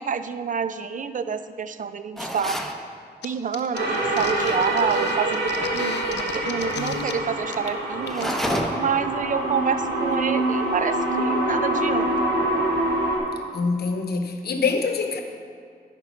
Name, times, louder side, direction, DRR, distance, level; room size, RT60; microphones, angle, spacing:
voice 1, 0.0-2.6 3.2-8.3 8.7-12.1, right 6 dB, 50° right, 11 dB, 0.5 m, -28 dB
sound 1, 2.2-2.8 8.0-9.0, equal, ahead, 0.8 m, -28 dB
sound 2, 3.2-3.3 3.5-7.1 7.5-7.7 8.0-8.5, left 7 dB, 90° left, 0.5 m, -35 dB
sound 3, 3.7-13.2, right 1 dB, 75° right, 1.7 m, -25 dB
voice 2, 13.5-15.2, left 4 dB, 65° left, 5 dB, 0.9 m, -25 dB
10.5 x 4.5 x 5.0 m, 2.2 s
cardioid pair, 55°, 18 cm